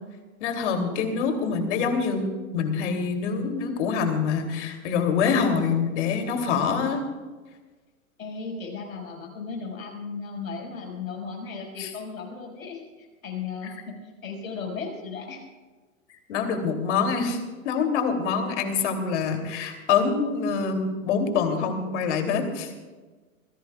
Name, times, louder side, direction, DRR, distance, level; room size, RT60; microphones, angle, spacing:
voice 1, 0.4-2.3 2.5-7.0 11.8-11.9 16.3-17.4 17.6-22.7, left 5 dB, 55° left, 5 dB, 3.1 m, -25 dB
voice 2, 1.1-1.6 8.2-15.4, left 5 dB, 75° left, 0 dB, 5.8 m, -36 dB
26.5 x 17.0 x 2.4 m, 1.3 s
hypercardioid pair, 115°, 41 cm